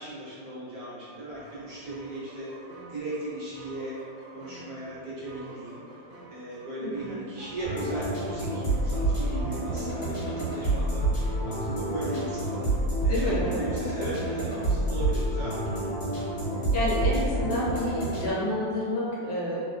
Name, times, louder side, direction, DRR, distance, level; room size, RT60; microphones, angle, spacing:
voice 1, 0.0-2.5 2.9-4.0 4.3-15.9, right 1 dB, 60° right, -9 dB, 1.2 m, -37 dB
sound 1, 1.3-12.8, right 2 dB, 85° right, 1.3 m, -48 dB
voice 2, 6.8-7.1 13.1-13.7 16.7-19.6, left 1 dB, 70° left, -7 dB, 1.3 m, -29 dB
sound 2, 7.6-18.3, right 1 dB, 45° left, 1.4 m, -28 dB
3.4 x 2.2 x 2.5 m, 2.4 s
omnidirectional pair, 2.1 m